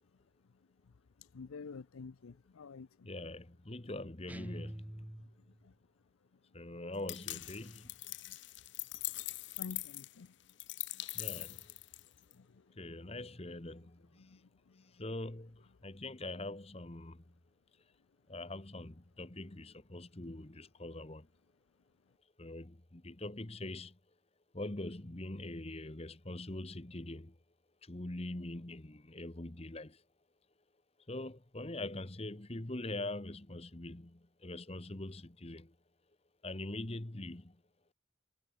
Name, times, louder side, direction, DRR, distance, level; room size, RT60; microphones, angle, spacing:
voice 1, 1.2-3.1 5.2-5.3 5.6-5.7 8.3-8.4 9.5-10.3 10.9-11.1 12.3-12.7 14.2-14.8, left 5 dB, 90° left, 0.6 m, -50 dB
voice 2, 3.0-4.9 6.5-7.9 11.1-11.7 12.8-14.4 14.8-17.2 18.3-21.3 22.4-24.0 24.5-27.3 27.8-30.0 31.1-35.7 36.4-37.6, left 2 dB, 30° left, 1.2 m, -43 dB
sound 1, 4.3-5.6, right 1 dB, 5° right, 0.6 m, -46 dB
sound 2, 7.1-12.3, left 18 dB, 60° left, 0.9 m, -42 dB
head